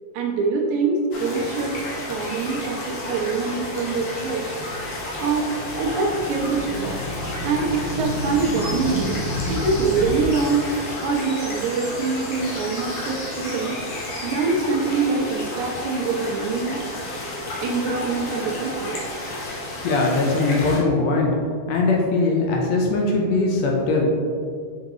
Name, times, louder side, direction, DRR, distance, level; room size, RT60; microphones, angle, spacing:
voice 1, 0.1-1.7 2.1-4.4 5.2-5.5 5.8-6.9 7.4-9.2 9.5-10.7 11.0-13.8 14.2-16.8 17.6-19.0, right 4 dB, 75° right, 0 dB, 2.2 m, -24 dB
sound 1, 1.1-20.8, left 1 dB, 55° left, 1.9 m, -32 dB
sound 2, 3.9-10.2, left 1 dB, 60° right, 0.7 m, -32 dB
voice 2, 19.8-21.3 21.7-24.1, left 3 dB, 75° left, -1 dB, 1.8 m, -20 dB
6.5 x 5.7 x 3.0 m, 2.2 s
omnidirectional pair, 3.5 m